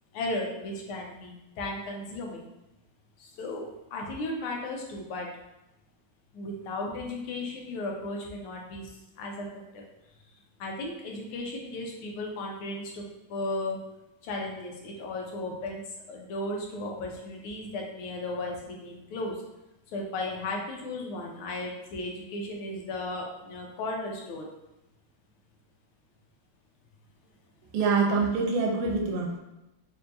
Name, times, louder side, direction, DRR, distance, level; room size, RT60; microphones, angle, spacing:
voice 1, 0.1-2.4 3.4-3.6 3.9-5.3 6.3-8.8 9.2-9.4 9.7-9.8 10.6-13.0 13.3-13.8 14.2-15.8 16.1-19.4 19.9-24.5, left 2 dB, 80° left, 0 dB, 1.6 m, -35 dB
voice 2, 27.7-29.4, right 4 dB, 80° right, 0 dB, 1.6 m, -25 dB
4.6 x 2.7 x 2.6 m, 0.94 s
omnidirectional pair, 2.4 m